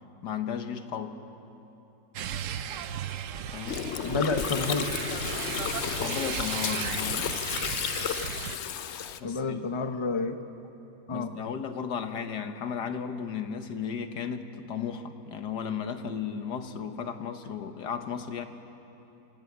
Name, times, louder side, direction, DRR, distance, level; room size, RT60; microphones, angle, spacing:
voice 1, 0.2-1.2 3.5-3.8 6.0-7.4 9.2-9.6 11.1-18.5, left 7 dB, 80° left, 8 dB, 1.8 m, -34 dB
sound 1, 2.1-8.6, right 9 dB, 60° right, 0.9 m, -36 dB
Gurgling, 3.7-9.2, left 9 dB, 60° left, 0.8 m, -32 dB
voice 2, 4.0-4.8 9.2-10.4 11.1-11.3, left 4 dB, 25° left, 8 dB, 0.7 m, -29 dB
26.5 x 18.5 x 8.6 m, 3.0 s
omnidirectional pair, 1.8 m